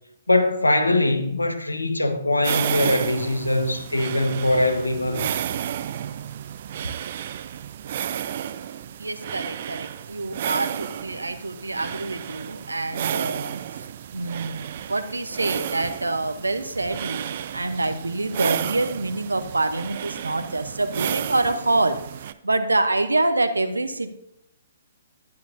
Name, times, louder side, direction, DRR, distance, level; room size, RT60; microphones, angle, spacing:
voice 1, 0.3-5.2, left 2 dB, 90° left, 1.1 m, -22 dB
sound 1, 2.4-22.3, right 10 dB, 50° right, 0.5 m, -32 dB
voice 2, 9.0-13.6 14.1-22.0 22.4-24.1, right 2 dB, 85° right, 0.9 m, -26 dB
10.5 x 10.5 x 2.7 m
figure-of-eight pair, 125°, 0 cm